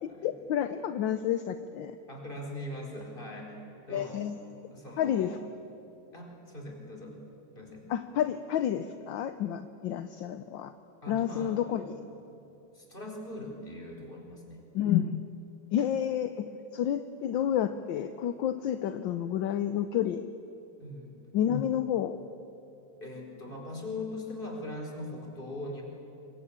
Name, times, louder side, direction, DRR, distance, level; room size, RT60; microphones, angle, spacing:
voice 1, 0.0-2.0 3.9-4.4 5.0-5.4 7.9-10.7 11.1-11.9 14.7-15.2 15.7-20.3 21.3-22.2, left 10 dB, 70° left, 10 dB, 1.4 m, -30 dB
voice 2, 2.1-4.2 4.7-5.3 6.1-7.2 7.5-7.9 11.0-11.9 12.7-14.6 20.8-21.2 23.0-25.8, left 1 dB, 25° left, 1 dB, 4.6 m, -41 dB
26.5 x 22.5 x 8.7 m, 2.8 s
omnidirectional pair, 2.4 m